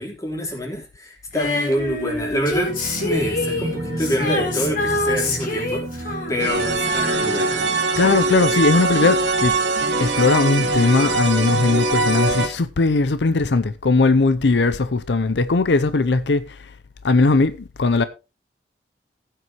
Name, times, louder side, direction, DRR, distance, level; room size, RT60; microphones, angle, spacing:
voice 1, 0.0-2.7 3.0-7.7, equal, 20° left, 3.8 m, -26 dB
Female singing, 1.3-8.3 9.4-9.5, left 2 dB, 50° left, 3.8 m, -27 dB
sound 1, 2.7-10.7, right 1 dB, 60° right, 2.3 m, -34 dB
sound 2, 6.4-12.5, right 2 dB, 90° right, 2.1 m, -22 dB
voice 2, 8.0-9.6 10.0-16.7 17.0-18.0, left 3 dB, 80° left, 0.6 m, -19 dB
15.5 x 9.0 x 3.0 m
head